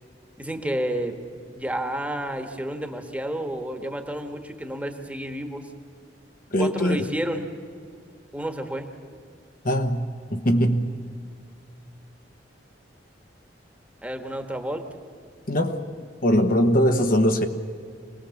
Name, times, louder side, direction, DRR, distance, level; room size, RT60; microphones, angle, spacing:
voice 1, 0.4-1.1 1.5-5.7 6.6-7.5 8.3-8.9 14.0-14.8, right 1 dB, 10° right, 5 dB, 1.5 m, -30 dB
voice 2, 6.5-7.0 9.6-10.0 10.3-10.9 15.5-15.9 16.2-17.4, equal, 55° left, 5 dB, 1.3 m, -21 dB
26.0 x 19.0 x 7.1 m, 2.2 s
head